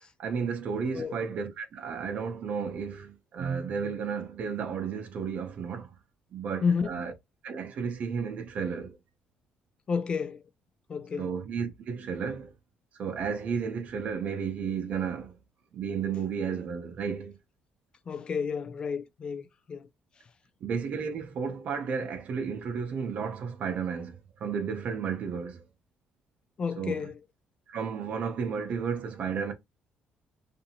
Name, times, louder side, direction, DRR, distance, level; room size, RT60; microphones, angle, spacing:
voice 1, 0.2-5.9 6.3-7.1 7.4-9.0 11.2-12.5 13.0-15.3 15.7-17.4 20.6-25.6 26.8-27.0 27.7-29.5, right 6 dB, 50° right, 0.6 m, -33 dB
voice 2, 6.6-6.9 9.9-10.4 10.9-11.3 18.1-19.9 26.6-27.2, left 5 dB, 30° left, 0.3 m, -31 dB
2.7 x 2.5 x 2.7 m
cardioid pair, 160°, 3 cm